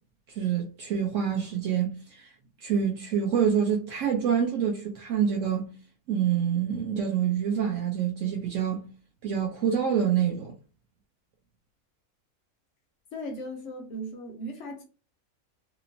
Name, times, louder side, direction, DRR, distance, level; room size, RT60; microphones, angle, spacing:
voice 1, 0.3-2.3 2.6-5.7 6.1-8.8 9.2-10.5, right 8 dB, 70° right, 0.8 m, -26 dB
voice 2, 13.1-14.8, equal, 65° left, 0.7 m, -37 dB
2.9 x 2.0 x 2.5 m
omnidirectional pair, 1.5 m